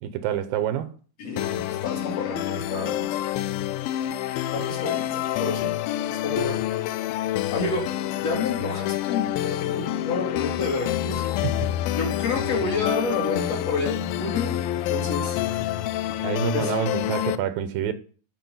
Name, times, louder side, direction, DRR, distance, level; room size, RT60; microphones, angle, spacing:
voice 1, 0.0-0.9 11.4-11.6 16.2-17.9, right 9 dB, 80° right, 2.6 m, -27 dB
voice 2, 1.2-3.1 4.5-5.7 6.0-6.6 7.5-7.9 8.2-11.2 11.9-15.4 16.5-16.7, left 3 dB, 45° left, 3.2 m, -29 dB
sound 1, 1.4-17.4, left 12 dB, 80° left, 2.4 m, -27 dB
14.0 x 5.1 x 5.5 m
omnidirectional pair, 4.2 m